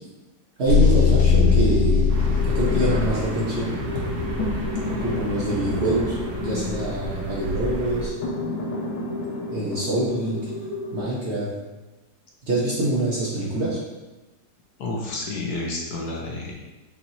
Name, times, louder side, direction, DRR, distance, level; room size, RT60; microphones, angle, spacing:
voice 1, 0.6-2.0 2.5-3.8 5.0-8.1 9.5-10.4 10.9-11.5 12.5-13.8, right 1 dB, 50° right, -7 dB, 1.0 m, -25 dB
sound 1, 0.7-11.0, left 5 dB, 90° left, 1.5 m, -24 dB
sound 2, 2.1-8.1, equal, 65° right, 1.4 m, -30 dB
voice 2, 14.8-16.5, left 2 dB, 65° left, -1 dB, 1.1 m, -30 dB
5.8 x 2.9 x 2.8 m, 1.1 s
omnidirectional pair, 1.9 m